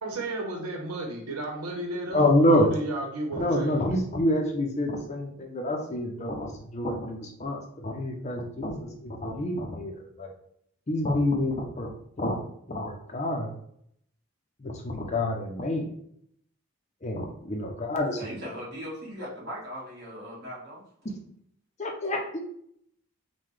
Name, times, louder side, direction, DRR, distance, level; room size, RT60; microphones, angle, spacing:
voice 1, 0.0-3.8, right 1 dB, 85° right, 0 dB, 1.0 m, -33 dB
voice 2, 2.1-2.7 3.3-10.3 10.9-12.4 12.7-13.5 14.6-15.9 17.0-18.2 21.8-22.4, left 1 dB, 30° left, 2 dB, 0.5 m, -27 dB
voice 3, 18.2-20.8, equal, 45° right, -5 dB, 1.6 m, -39 dB
5.6 x 2.2 x 3.2 m, 0.69 s
head